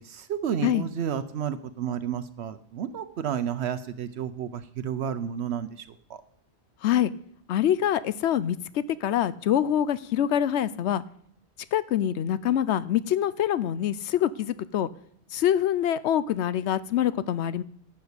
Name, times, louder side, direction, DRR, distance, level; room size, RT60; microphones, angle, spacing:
voice 1, 0.0-6.2, right 8 dB, 75° right, 11 dB, 0.9 m, -31 dB
voice 2, 7.5-11.0 11.7-14.9 15.3-17.6, left 10 dB, 90° left, 16 dB, 0.9 m, -25 dB
11.5 x 5.9 x 8.2 m, 0.66 s
omnidirectional pair, 1.1 m